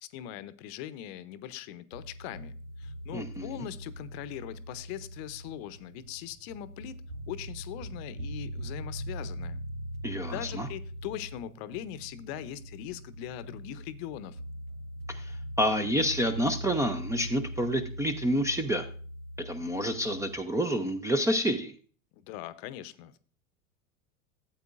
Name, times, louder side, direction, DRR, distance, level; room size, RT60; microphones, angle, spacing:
voice 1, 0.0-7.0 7.3-9.6 10.3-14.4 22.1-23.2, left 12 dB, 45° left, 15 dB, 0.7 m, -41 dB
sound 1, 1.9-20.4, equal, 85° right, 0.7 m, -41 dB
voice 2, 3.1-3.5 10.0-10.7 15.1-18.8 19.5-21.7, equal, 10° right, 8 dB, 0.5 m, -28 dB
13.0 x 8.0 x 2.4 m, 0.41 s
figure-of-eight pair, 85°, 42 cm